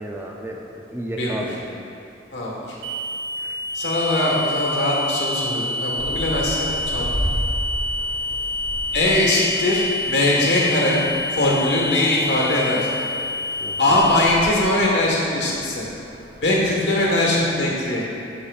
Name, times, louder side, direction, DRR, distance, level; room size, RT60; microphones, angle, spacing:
voice 1, 0.0-1.6 3.4-3.6 13.6-14.0, right 1 dB, 10° right, -1 dB, 0.4 m, -33 dB
voice 2, 2.3-2.7 3.7-7.1 8.9-11.0 11.3-12.9 13.8-15.9 16.4-18.0, left 1 dB, 75° left, -3 dB, 1.4 m, -21 dB
sound 1, 2.8-14.2, left 2 dB, 80° right, 0.7 m, -27 dB
sound 2, 5.9-17.8, equal, 50° right, 0.8 m, -34 dB
8.7 x 6.9 x 2.4 m, 2.7 s
head